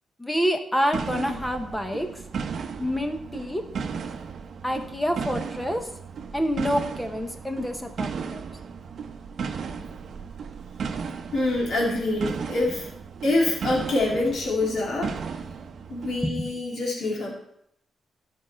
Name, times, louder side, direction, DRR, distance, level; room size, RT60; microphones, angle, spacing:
voice 1, 0.2-2.1 2.8-3.7 4.6-5.9 6.3-8.4 9.8-9.9 16.2-16.9, equal, 10° left, 6 dB, 1.0 m, -27 dB
sound 1, 0.9-16.3, right 6 dB, 55° right, 0.9 m, -35 dB
voice 2, 11.3-12.9 13.2-15.2 15.9-17.3, left 2 dB, 55° left, -3 dB, 2.6 m, -25 dB
14.0 x 5.5 x 4.4 m, 0.74 s
wide cardioid pair, 150°, 0 cm